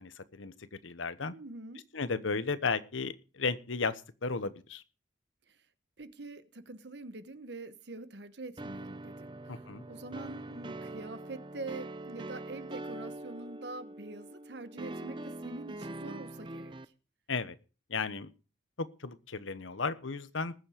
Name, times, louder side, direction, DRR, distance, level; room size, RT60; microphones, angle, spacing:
voice 1, 0.0-1.3 1.9-4.8 9.5-9.8 17.3-17.5 17.9-18.3 18.8-20.5, left 4 dB, 85° left, 1.0 m, -34 dB
voice 2, 1.3-1.9 5.5-5.6 6.0-9.6 9.9-16.9, right 3 dB, 60° right, 1.1 m, -45 dB
sound 1, 8.6-16.9, right 2 dB, 25° right, 0.6 m, -43 dB
20.0 x 7.3 x 5.0 m
head